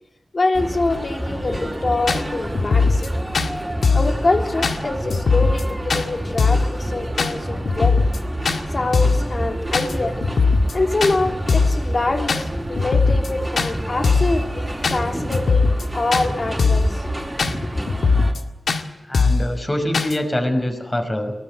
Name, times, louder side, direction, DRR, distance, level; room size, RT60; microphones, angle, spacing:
voice 1, 0.3-3.1 3.9-8.1 8.7-10.2 10.7-15.7 15.9-17.0 17.5-17.7, left 2 dB, 45° left, 4 dB, 3.3 m, -25 dB
sound 1, 0.5-18.3, right 1 dB, 15° right, 4.4 m, -28 dB
sound 2, 1.5-1.6 2.1-2.2 2.5-3.1 3.3-3.5 3.8-4.1 4.6-4.8 5.1-5.6 5.9-6.0 6.4-6.7 7.2-7.3 7.7-8.2 8.5-8.6 8.9-9.2 9.7-9.9 10.2-10.7 11.0-11.2 11.5-11.8 12.3-12.4 12.8-13.3 13.6-13.7 14.0-14.3 14.8-15.0 15.3-15.8 16.1-16.3 16.6-16.9 17.4-17.5 17.9-18.4 18.7-18.8 19.1-19.5 19.9-20.2, left 4 dB, 85° left, 2.0 m, -19 dB
voice 2, 18.9-21.3, left 1 dB, 20° left, 5 dB, 5.4 m, -24 dB
23.5 x 20.5 x 7.9 m, 0.97 s
wide cardioid pair, 105°, 0 cm